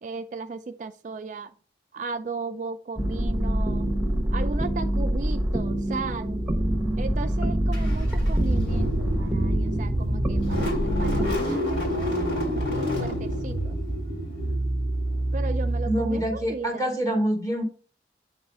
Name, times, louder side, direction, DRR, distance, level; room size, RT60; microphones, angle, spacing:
voice 1, 0.0-1.5 1.9-3.9 4.3-6.4 7.0-13.8 15.3-16.9, right 4 dB, 40° right, 8 dB, 0.3 m, -36 dB
sound 1, 3.0-11.4, right 1 dB, 5° right, 1.0 m, -25 dB
Car / Engine starting, 7.7-16.5, equal, 75° left, 3.4 m, -28 dB
voice 2, 15.9-17.6, right 1 dB, 15° left, 0 dB, 1.6 m, -26 dB
8.6 x 3.2 x 5.4 m, 0.40 s
head